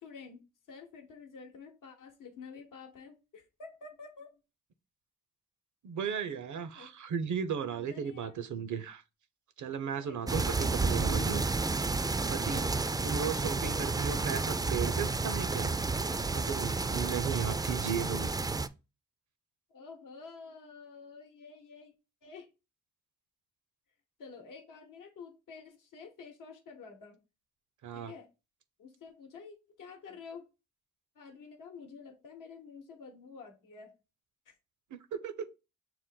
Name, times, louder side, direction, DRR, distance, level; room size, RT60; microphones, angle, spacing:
voice 1, 0.0-4.3 6.7-6.9 7.7-8.4 10.0-10.7 12.3-13.0 19.7-21.9 22.2-22.5 24.2-27.2 27.9-28.3 28.8-30.5 31.2-33.9, left 5 dB, 80° left, 0.9 m, -50 dB
voice 2, 5.8-9.0 9.6-11.5 12.3-12.7 13.0-15.7 16.3-18.3 27.8-28.1 34.9-35.5, right 7 dB, 65° right, 0.6 m, -35 dB
sound 1, 10.3-18.7, right 3 dB, 10° right, 0.3 m, -31 dB
5.8 x 2.1 x 3.7 m
supercardioid pair, 40°, 32 cm